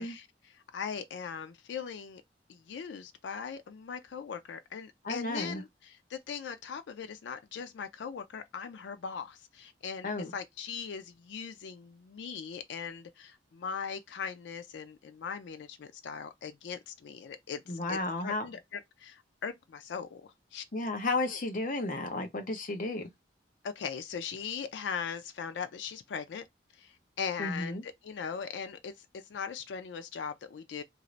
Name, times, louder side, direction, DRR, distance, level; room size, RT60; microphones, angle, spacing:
voice 1, 0.0-2.2 2.5-20.6 21.3-21.4 23.6-26.4 26.7-30.8, left 6 dB, 85° left, 0.4 m, -40 dB
voice 2, 5.0-5.6 10.0-10.3 17.7-18.5 20.7-23.1 27.4-27.8, left 2 dB, 50° left, 0.7 m, -33 dB
2.6 x 2.5 x 3.0 m
head